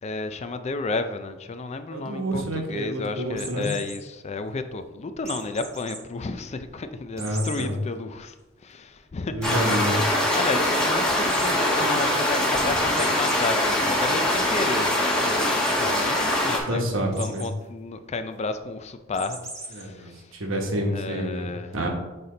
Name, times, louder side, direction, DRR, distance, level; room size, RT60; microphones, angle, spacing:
voice 1, 0.0-8.3 8.6-9.4 10.3-20.3 20.9-21.8, left 3 dB, 35° left, 9 dB, 0.4 m, -32 dB
voice 2, 1.9-3.7 7.2-7.7 9.3-10.1 16.7-17.5 19.7-21.9, equal, 70° right, 2 dB, 1.2 m, -28 dB
sound 1, 3.3-4.0 5.2-6.0 6.4-6.5 7.2-7.7 8.1-8.2 8.5-8.6 9.4-9.8 11.2-11.5 12.9-13.4 13.8-14.4 15.1-15.3 15.6-15.7 16.0-16.3 17.1-17.5 19.1-19.8, right 2 dB, 15° right, 1.3 m, -38 dB
sound 2, 9.4-16.6, left 1 dB, 5° left, 1.3 m, -23 dB
6.8 x 4.2 x 3.9 m, 1.1 s
head